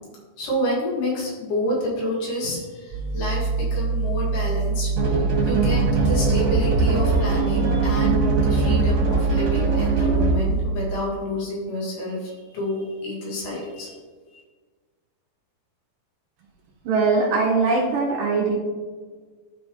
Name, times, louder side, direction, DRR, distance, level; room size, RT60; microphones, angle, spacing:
voice 1, 0.4-14.0 14.3-14.4, left 1 dB, 80° left, -6 dB, 4.2 m, -29 dB
sound 1, 2.9-10.6, right 4 dB, 30° right, 2.1 m, -25 dB
sound 2, 5.0-10.5, right 3 dB, 50° right, 3.1 m, -22 dB
voice 2, 16.8-18.5, right 4 dB, 70° right, -2 dB, 2.4 m, -21 dB
12.5 x 4.1 x 3.1 m, 1.5 s
omnidirectional pair, 4.6 m